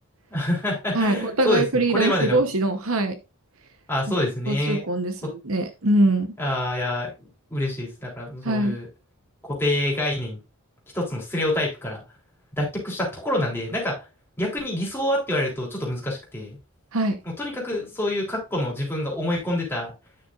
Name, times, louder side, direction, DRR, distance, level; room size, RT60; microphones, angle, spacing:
voice 1, 0.3-2.4 3.9-4.8 5.2-5.3 6.4-8.9 9.4-10.4 10.9-12.0 12.6-14.0 14.4-16.6 17.2-19.9, left 1 dB, 10° left, 3.6 m, -26 dB
voice 2, 0.9-3.2 4.5-5.1 5.4-6.3 8.4-8.8 16.9-17.2, right 2 dB, 65° right, 1.0 m, -22 dB
10.0 x 6.3 x 2.5 m
head